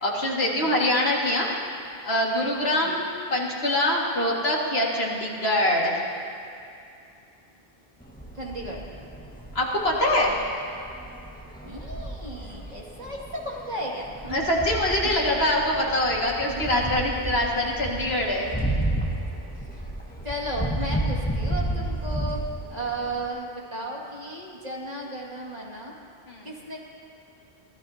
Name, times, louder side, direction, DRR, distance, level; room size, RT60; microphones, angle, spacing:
voice 1, 0.0-1.5 2.0-3.0 3.3-6.0 9.5-10.3 14.3-18.6 26.3-26.5, left 1 dB, 75° left, -3 dB, 2.3 m, -24 dB
voice 2, 2.6-2.9 8.3-8.8 11.6-14.4 15.0-15.1 16.5-17.3 19.7-19.8 20.2-22.4 22.7-25.9 26.4-26.8, right 1 dB, 40° right, -3 dB, 2.4 m, -35 dB
sound 1, 8.0-23.3, right 1 dB, 10° left, 1.7 m, -32 dB
25.5 x 18.0 x 2.9 m, 2.6 s
omnidirectional pair, 1.0 m